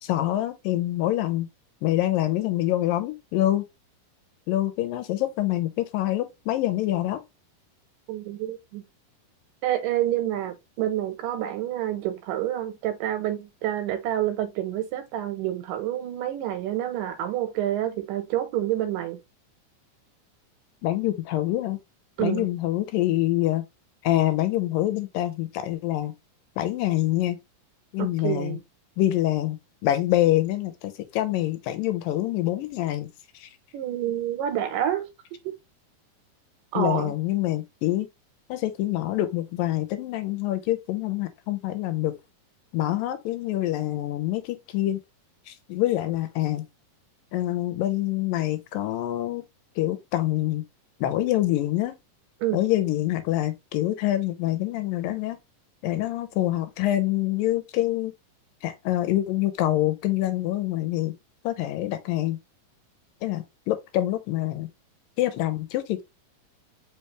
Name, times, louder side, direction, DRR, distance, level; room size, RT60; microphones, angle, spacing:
voice 1, 0.0-1.5 1.8-3.6 4.5-7.2 20.8-21.8 22.2-23.7 24.0-26.1 26.6-27.4 27.9-28.6 29.0-33.1 33.4-33.5 36.7-38.1 38.5-42.1 42.7-45.0 45.5-46.7 47.3-49.4 49.8-50.6 51.0-51.9 52.5-55.4 55.8-58.1 58.6-61.1 61.4-62.4 63.2-64.7 65.2-66.0, left 14 dB, 85° left, 2.4 m, -26 dB
voice 2, 8.1-8.8 9.6-19.2 22.2-22.5 28.0-28.6 33.7-35.0 35.5-35.6 36.7-37.1 52.4-52.6, right 12 dB, 80° right, 2.3 m, -28 dB
5.1 x 3.2 x 3.1 m
omnidirectional pair, 4.0 m